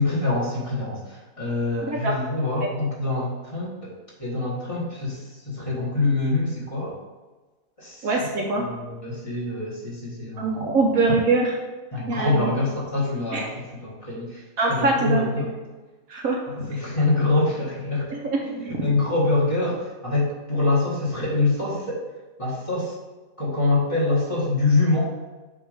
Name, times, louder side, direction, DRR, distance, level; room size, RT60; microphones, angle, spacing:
voice 1, 0.0-7.0 7.8-10.7 11.9-14.4 14.7-15.5 16.5-18.1 18.4-22.1 22.4-22.9 23.4-25.1, left 2 dB, 20° left, -7 dB, 1.6 m, -25 dB
voice 2, 1.8-2.2 2.6-2.7 8.0-8.6 10.4-11.5 12.1-12.4 13.3-13.4 14.6-15.3 16.1-16.4 18.1-18.5, right 3 dB, 65° right, 0 dB, 1.1 m, -23 dB
7.5 x 2.9 x 4.9 m, 1.2 s
omnidirectional pair, 1.8 m